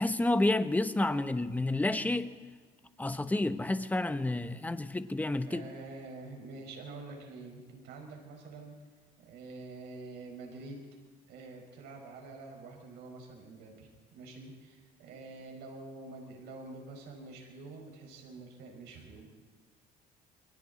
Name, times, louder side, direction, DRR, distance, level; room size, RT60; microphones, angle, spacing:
voice 1, 0.0-2.3 3.0-5.7, left 2 dB, 10° left, 1.0 m, -30 dB
voice 2, 5.5-8.7 9.2-10.8 11.3-19.3, right 3 dB, 85° right, 5.4 m, -47 dB
27.5 x 23.5 x 4.2 m
cardioid pair, 110°, 17 cm